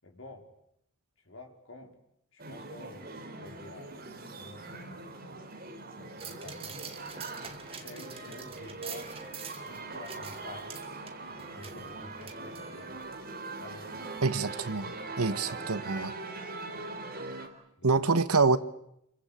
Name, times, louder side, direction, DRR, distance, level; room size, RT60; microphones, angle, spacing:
voice 1, 0.0-0.5 1.2-2.0 2.3-3.1 3.3-4.0 4.4-5.0 6.0-6.9 7.6-10.9 11.3-13.0 13.6-14.5 17.8-18.0, left 2 dB, 60° left, 4.6 m, -49 dB
sound 1, 2.4-17.5, right 3 dB, 40° right, 3.9 m, -42 dB
sound 2, 6.2-13.1 13.5-13.6, right 6 dB, 25° right, 2.3 m, -46 dB
voice 2, 14.2-16.1 17.8-18.6, right 4 dB, 90° right, 1.3 m, -26 dB
28.5 x 23.5 x 8.7 m
head